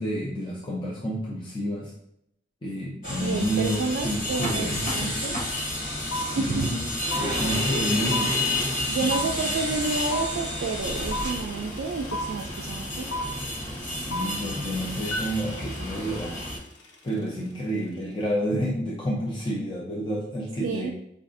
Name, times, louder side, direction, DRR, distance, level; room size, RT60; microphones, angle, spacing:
voice 1, 0.0-1.9 2.6-5.1 6.1-6.8 7.2-8.3 9.2-9.8 13.8-16.4 17.0-20.9, equal, 25° left, -5 dB, 0.5 m, -30 dB
sound 1, 3.0-16.6, left 1 dB, 45° left, 1.0 m, -30 dB
voice 2, 3.2-5.4 6.3-6.8 8.9-13.1 20.6-20.9, right 4 dB, 85° right, 1 dB, 0.3 m, -30 dB
sound 2, 5.5-5.6 5.8-16.9, left 1 dB, 80° left, 0.6 m, -35 dB
4.7 x 2.4 x 2.5 m, 0.76 s
head